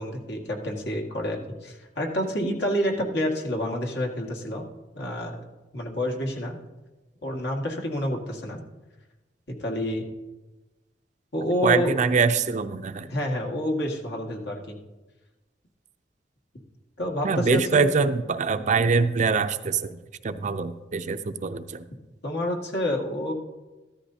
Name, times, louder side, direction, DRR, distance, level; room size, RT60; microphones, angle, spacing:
voice 1, 0.0-4.7 5.0-5.3 5.7-6.6 7.2-8.6 9.6-10.0 11.3-11.9 13.1-14.8 17.0-17.9 22.2-23.3, equal, 65° left, 0 dB, 1.9 m, -28 dB
voice 2, 11.6-13.1 17.2-20.0 20.2-21.8, right 4 dB, 40° right, 10 dB, 0.5 m, -24 dB
14.0 x 13.0 x 2.8 m, 1.1 s
head